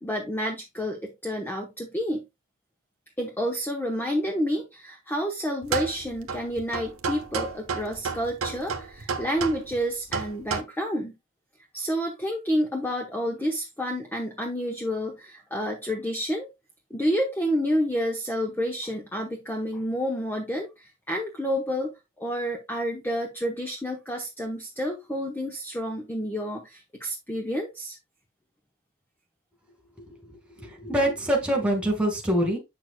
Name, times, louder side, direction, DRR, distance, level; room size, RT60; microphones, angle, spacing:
voice 1, 0.0-2.2 3.2-11.1 11.7-16.5 16.9-21.9 22.2-28.0, equal, 10° left, 1 dB, 0.8 m, -29 dB
sound 1, 5.6-10.6, right 5 dB, 70° right, 0.9 m, -32 dB
voice 2, 30.0-32.6, right 1 dB, 5° right, 3 dB, 2.0 m, -25 dB
7.5 x 6.6 x 2.2 m, 0.22 s
head